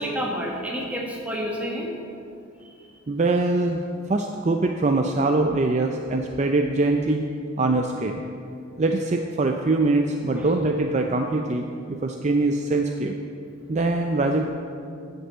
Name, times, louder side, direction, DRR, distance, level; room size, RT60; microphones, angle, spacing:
voice 1, 0.0-1.9 10.3-10.5, equal, 5° right, -2 dB, 1.5 m, -29 dB
voice 2, 3.1-3.8 4.1-7.3 7.6-8.2 8.8-13.2 13.7-14.5, right 2 dB, 35° right, 4 dB, 0.4 m, -23 dB
9.7 x 5.4 x 7.8 m, 2.5 s
head